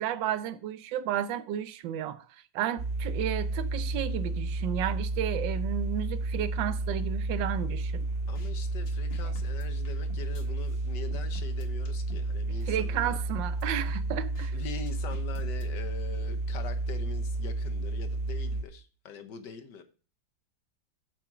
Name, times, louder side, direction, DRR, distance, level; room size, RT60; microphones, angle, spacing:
voice 1, 0.0-2.2 2.5-8.1 9.2-9.3 12.7-14.5, right 10 dB, 80° right, 1.4 m, -32 dB
sound 1, 2.8-18.6, right 2 dB, 40° right, 1.4 m, -31 dB
voice 2, 8.3-13.2 14.5-19.8, left 6 dB, 70° left, 1.7 m, -43 dB
cooldrum Song, 8.4-8.5 8.9-10.4 11.1-12.3 12.6-12.7 13.1-14.5 14.9-15.6, left 2 dB, 85° left, 2.5 m, -49 dB
7.7 x 7.4 x 4.9 m
omnidirectional pair, 2.0 m